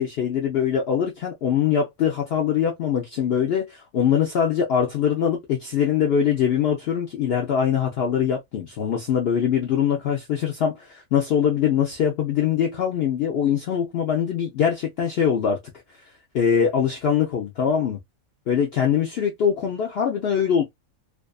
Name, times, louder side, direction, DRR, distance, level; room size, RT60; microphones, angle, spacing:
voice 1, 0.0-15.6 16.3-18.0 18.5-20.6, left 8 dB, 70° left, 0.6 m, -22 dB
2.5 x 2.4 x 2.2 m
omnidirectional pair, 1.5 m